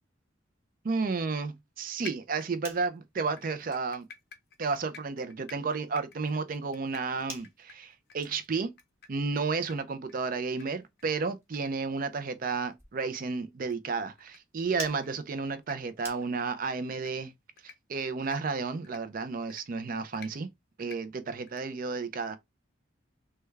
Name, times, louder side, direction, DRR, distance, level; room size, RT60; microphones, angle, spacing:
voice 1, 0.8-4.1 4.6-8.7 9.1-17.3 17.6-20.5 20.8-22.4, right 4 dB, 45° right, 0.4 m, -32 dB
sound 1, 2.0-2.9 3.4-9.4 9.7-9.8 10.1-10.2 10.6-10.7 11.0-11.1 11.5-11.6 12.0-12.1 12.5-12.6 13.6-13.7 14.2-14.4 14.9-15.1 15.5-15.8 16.2-16.5 16.9-17.1 17.6-17.8 18.2-18.4 18.8-19.0 19.5-19.6 20.1-20.3 20.8-21.0 21.5-21.6, left 6 dB, 50° left, 0.5 m, -48 dB
sound 2, 2.4-16.7, right 1 dB, 15° right, 0.9 m, -52 dB
3.3 x 2.2 x 3.2 m
head